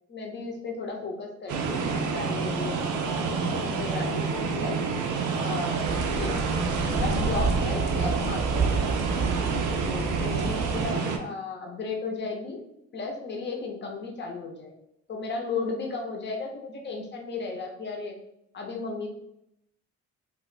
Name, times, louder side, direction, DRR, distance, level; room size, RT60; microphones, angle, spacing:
voice 1, 0.1-4.8 5.4-6.4 6.9-9.4 9.8-12.6 12.9-14.7 15.1-18.1 18.5-19.1, left 3 dB, 35° left, 1 dB, 0.8 m, -35 dB
sound 1, 1.5-11.2, right 4 dB, 85° right, 0.5 m, -28 dB
sound 2, 5.8-10.8, right 4 dB, 20° right, 0.6 m, -29 dB
2.3 x 2.3 x 4.0 m, 0.78 s
cardioid pair, 90°, 30 cm